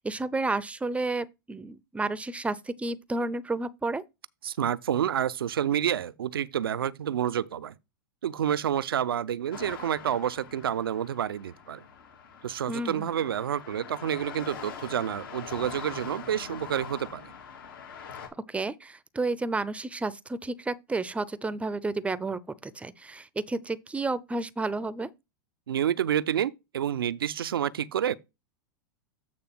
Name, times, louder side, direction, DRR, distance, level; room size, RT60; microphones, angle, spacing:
voice 1, 0.0-4.0 12.7-13.1 18.5-25.1, right 3 dB, 10° right, 0.5 m, -31 dB
voice 2, 4.4-7.7 8.2-11.8 12.4-17.2 25.7-28.1, right 9 dB, 85° right, 0.5 m, -29 dB
sound 1, 9.5-18.3, left 6 dB, 75° left, 2.5 m, -43 dB
8.8 x 3.3 x 5.9 m
hypercardioid pair, 105°, 12 cm